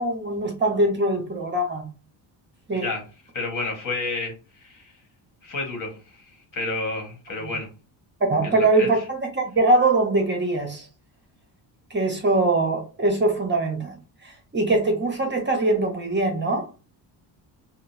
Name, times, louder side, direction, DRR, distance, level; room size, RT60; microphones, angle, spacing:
voice 1, 0.0-1.9 2.7-2.9 7.4-7.5 8.3-10.9 11.9-13.9 14.5-16.7, right 2 dB, 25° right, 0.8 m, -22 dB
voice 2, 3.3-4.3 4.6-4.9 5.4-6.2 6.5-7.7 8.4-9.0, left 3 dB, 45° left, 1.4 m, -30 dB
3.7 x 2.0 x 2.6 m
cardioid pair, 105°, 45 cm